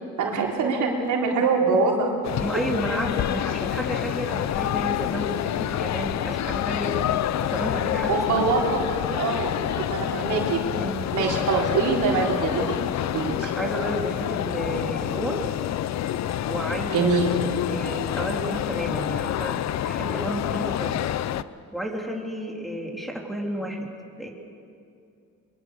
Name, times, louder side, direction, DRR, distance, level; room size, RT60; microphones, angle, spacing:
voice 1, 0.2-2.1 8.1-10.6 11.1-12.8 13.1-13.5 16.9-17.3, right 4 dB, 75° right, -1 dB, 4.0 m, -24 dB
sound 1, 2.2-21.4, left 11 dB, 65° left, 0.7 m, -28 dB
voice 2, 2.4-7.0 7.4-8.5 10.8-11.1 13.4-15.5 16.5-17.4 17.7-21.1 21.7-23.9 24.2-24.3, right 1 dB, ahead, -1 dB, 3.6 m, -31 dB
24.0 x 23.0 x 6.7 m, 2.4 s
cardioid pair, 90°, 30 cm